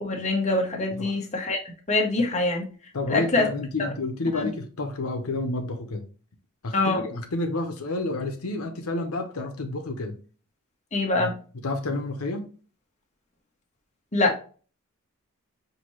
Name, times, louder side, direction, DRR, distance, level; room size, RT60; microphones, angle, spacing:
voice 1, 0.0-1.6 1.9-2.7 3.1-3.5 3.8-3.9 4.3-4.5 6.7-7.0 10.9-11.3 14.1-14.3, left 2 dB, 30° left, 0 dB, 1.0 m, -24 dB
voice 2, 2.9-6.1 6.6-10.1 11.2-11.3 11.6-12.5, left 2 dB, 80° left, 4 dB, 0.8 m, -30 dB
5.8 x 2.7 x 3.1 m, 0.39 s
head